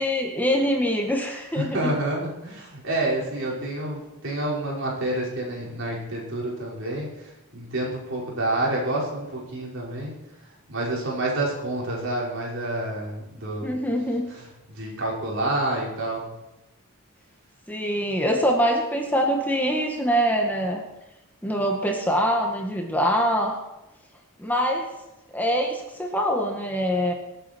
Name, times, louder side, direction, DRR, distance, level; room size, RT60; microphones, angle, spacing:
voice 1, 0.0-1.9 13.6-14.2 17.7-20.8 21.4-23.6 24.4-24.9 25.3-27.1, equal, 10° left, 1 dB, 1.8 m, -24 dB
voice 2, 1.6-10.1 10.7-13.7 14.3-16.2, right 1 dB, 60° right, -3 dB, 5.4 m, -28 dB
25.5 x 9.0 x 4.6 m, 0.99 s
head